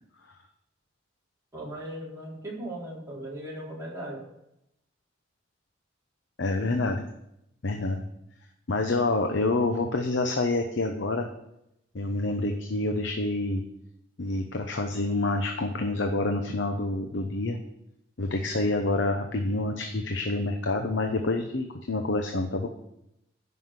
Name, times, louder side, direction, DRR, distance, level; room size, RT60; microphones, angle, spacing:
voice 1, 1.5-4.2, right 1 dB, 15° right, -6 dB, 3.6 m, -38 dB
voice 2, 6.4-7.1 7.6-8.0 8.7-11.3 11.9-13.6 14.2-17.6 18.2-22.7, left 2 dB, 70° left, 4 dB, 0.9 m, -27 dB
9.5 x 5.8 x 7.8 m, 0.82 s
head